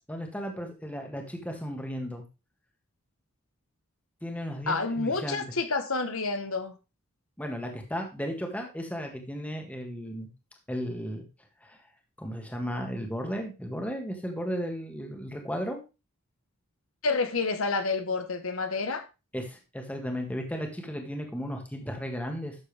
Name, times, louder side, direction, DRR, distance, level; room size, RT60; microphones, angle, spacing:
voice 1, 0.1-2.2 4.2-5.4 7.4-10.3 10.7-11.3 11.6-11.8 12.2-15.8 19.3-22.6, equal, 5° left, 1.8 m, -35 dB
voice 2, 4.7-6.8 17.0-19.0, left 3 dB, 70° left, 1.3 m, -29 dB
12.0 x 7.2 x 3.4 m
head